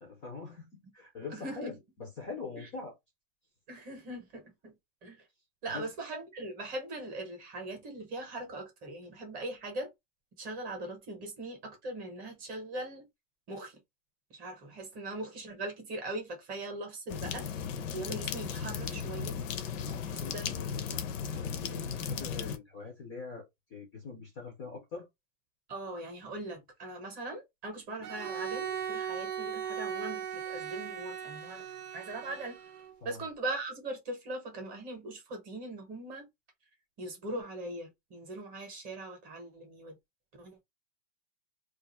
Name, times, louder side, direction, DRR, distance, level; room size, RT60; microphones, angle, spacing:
voice 1, 0.0-2.9 5.7-5.9 19.9-21.0 21.3-25.1 33.0-33.2, left 4 dB, 20° left, 0.5 m, -43 dB
voice 2, 1.3-1.8 2.6-2.7 3.7-4.7 5.0-5.2 5.6-9.9 10.4-13.0 13.5-13.8 14.3-17.5 17.9-19.4 20.0-20.5 20.9-21.1 25.7-31.6 31.9-32.6 33.0-36.2 37.0-39.9 40.4-40.6, right 2 dB, 20° right, 0.8 m, -40 dB
sound 1, 17.1-22.6, left 7 dB, 60° left, 0.6 m, -36 dB
Bowed string instrument, 28.0-33.0, right 8 dB, 90° right, 0.7 m, -38 dB
2.5 x 2.4 x 4.0 m
supercardioid pair, 165°, 44 cm